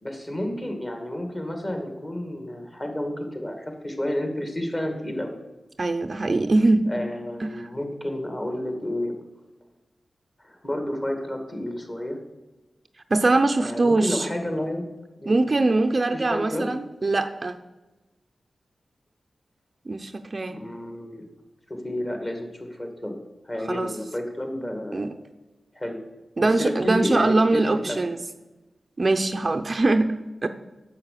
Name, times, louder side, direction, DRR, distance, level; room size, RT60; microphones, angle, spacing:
voice 1, 0.0-5.3 6.9-9.1 10.4-12.2 13.6-14.8 15.2-15.3 16.1-16.7 20.5-21.3 21.7-23.2 23.5-25.1 25.7-26.0 26.4-28.0, left 1 dB, 25° left, 5 dB, 2.1 m, -30 dB
voice 2, 5.8-6.9 7.4-7.7 13.1-14.3 15.3-17.6 19.9-20.6 23.7-23.9 24.9-25.1 26.4-28.2 29.0-30.5, right 2 dB, 35° right, 8 dB, 0.6 m, -22 dB
10.5 x 7.6 x 6.6 m, 1.1 s
wide cardioid pair, 125°, 0 cm